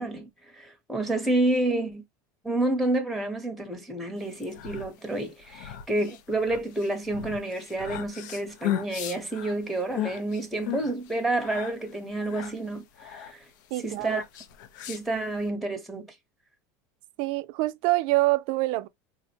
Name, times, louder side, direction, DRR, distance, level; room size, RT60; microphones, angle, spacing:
voice 1, 0.0-2.0 2.4-13.4 13.8-14.2 14.9-16.1, right 2 dB, ahead, 0.9 m, -29 dB
sound 1, 4.3-15.5, left 12 dB, 75° left, 0.6 m, -37 dB
voice 2, 13.7-14.2 17.2-18.9, right 19 dB, 60° right, 0.4 m, -25 dB
3.7 x 2.1 x 2.7 m
supercardioid pair, 135°, 10 cm